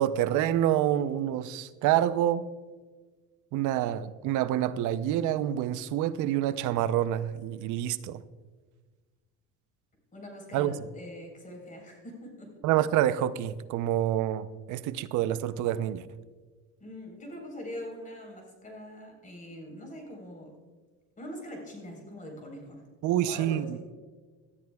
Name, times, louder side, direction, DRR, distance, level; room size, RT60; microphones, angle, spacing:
voice 1, 0.0-2.4 3.5-8.2 10.5-10.7 12.6-16.1 23.0-23.8, right 12 dB, 65° right, 14 dB, 0.6 m, -27 dB
voice 2, 10.1-12.6 16.8-20.6 21.2-23.8, equal, 25° left, 1 dB, 4.0 m, -43 dB
18.0 x 12.5 x 2.3 m, 1.4 s
cardioid pair, 125°, 32 cm